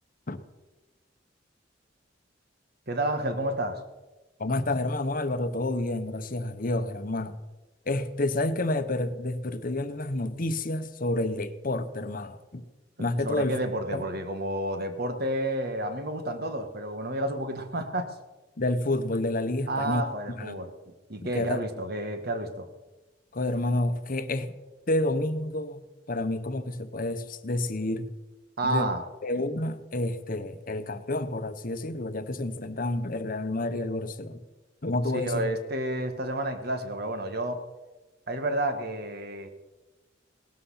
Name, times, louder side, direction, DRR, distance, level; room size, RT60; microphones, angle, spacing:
voice 1, 2.9-3.8 13.2-18.1 19.7-22.7 28.6-29.0 35.1-37.6 38.3-39.5, right 1 dB, 55° right, 1.7 m, -30 dB
voice 2, 4.4-7.4 7.9-12.6 13.0-13.6 13.9-14.1 18.6-20.0 20.3-20.6 21.2-21.6 23.3-24.5 24.9-28.1 28.6-28.9 29.2-34.4 34.8-35.5, left 2 dB, 45° left, 1.0 m, -29 dB
18.5 x 13.0 x 5.7 m
head